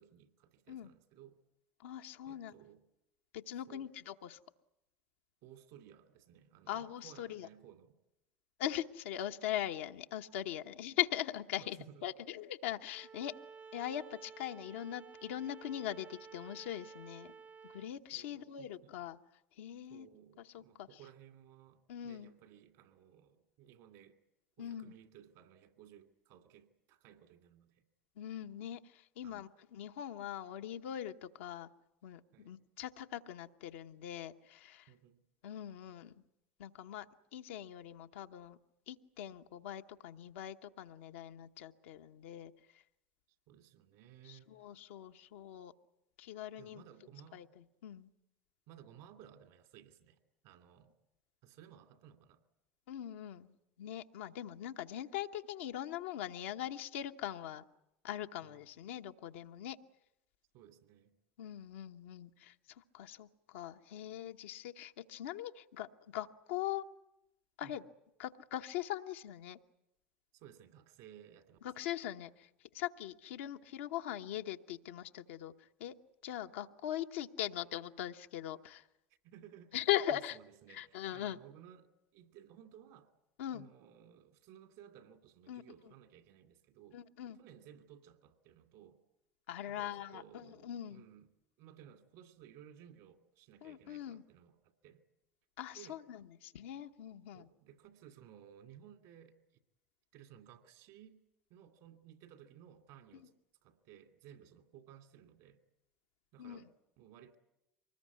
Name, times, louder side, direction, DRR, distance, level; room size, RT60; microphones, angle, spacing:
voice 1, 0.0-1.4 2.3-2.8 3.7-3.9 5.4-8.0 11.6-12.0 18.1-18.9 19.9-24.1 24.6-27.8 29.2-29.5 32.3-32.5 34.9-35.2 43.5-44.5 46.6-47.4 48.7-50.2 50.4-50.9 51.4-52.4 58.4-58.6 60.5-61.2 67.6-67.8 70.3-71.6 79.2-83.1 83.5-87.0 87.4-89.0 89.6-91.3 91.6-95.0 95.7-96.2 97.3-99.3 100.1-101.2 101.5-103.3 103.6-105.6 106.3-106.7 107.0-107.4, right 10 dB, 70° right, 6 dB, 2.6 m, -58 dB
voice 2, 1.8-2.5 3.3-4.4 6.7-7.5 8.6-13.3 13.7-17.3 17.7-19.2 19.6-20.1 20.4-21.0 21.9-22.3 24.6-24.9 28.2-31.7 32.0-34.9 35.4-36.2 36.6-37.1 37.3-38.6 38.9-42.5 44.2-45.7 46.2-46.9 47.3-48.1 52.9-53.5 53.8-57.6 58.0-59.8 61.4-65.9 66.1-66.8 67.6-67.8 68.2-69.6 71.6-72.5 72.7-76.0 76.2-78.9 79.7-80.4 80.7-81.4 83.4-83.6 85.5-85.6 86.9-87.4 89.5-91.0 93.6-94.2 95.6-97.5 103.1-103.2 106.4-106.6, left 12 dB, 75° left, 6 dB, 1.0 m, -41 dB
Bowed string instrument, 12.9-17.9, right 5 dB, 25° right, 0.8 m, -53 dB
24.5 x 20.0 x 9.5 m, 0.88 s
hypercardioid pair, 75°, 6 cm